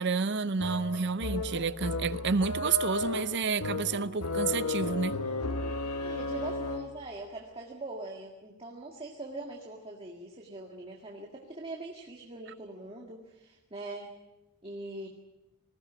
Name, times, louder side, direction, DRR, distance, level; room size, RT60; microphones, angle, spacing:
voice 1, 0.0-5.2, right 5 dB, 50° right, 0.7 m, -30 dB
sound 1, 0.6-7.1, left 2 dB, 80° left, 1.4 m, -34 dB
voice 2, 6.0-14.1 14.6-15.1, right 2 dB, 25° right, 1.9 m, -42 dB
20.0 x 16.5 x 8.7 m
head